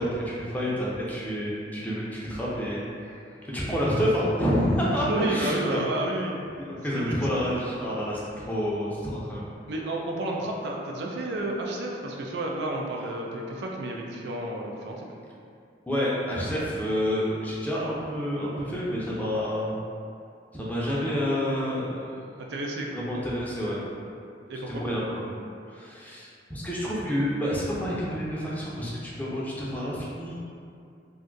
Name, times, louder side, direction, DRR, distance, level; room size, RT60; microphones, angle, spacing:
voice 1, 0.0-3.2 3.5-5.8 6.6-9.4 15.9-19.8 20.5-22.2 22.9-23.8 24.7-25.2 25.7-30.4, equal, 10° left, -6 dB, 0.5 m, -28 dB
voice 2, 4.9-6.4 7.0-7.2 9.7-15.1 22.4-22.9 24.5-24.8, right 1 dB, 65° right, -1 dB, 0.4 m, -31 dB
2.5 x 2.3 x 3.8 m, 2.4 s
head